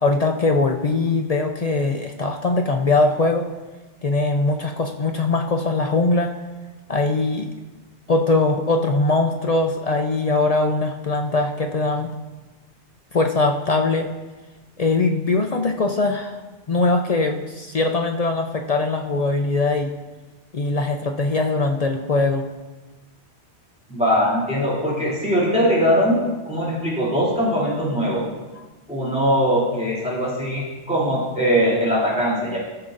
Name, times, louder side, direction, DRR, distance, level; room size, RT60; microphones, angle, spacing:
voice 1, 0.0-3.5 4.0-6.3 6.9-7.5 8.1-12.1 13.1-14.1 14.8-16.4 16.7-19.9 20.5-22.4, left 3 dB, 50° left, 4 dB, 0.4 m, -21 dB
voice 2, 23.9-26.2 26.5-28.3 28.9-32.6, equal, 5° right, -8 dB, 2.9 m, -21 dB
14.5 x 6.7 x 2.5 m, 1.2 s
omnidirectional pair, 1.2 m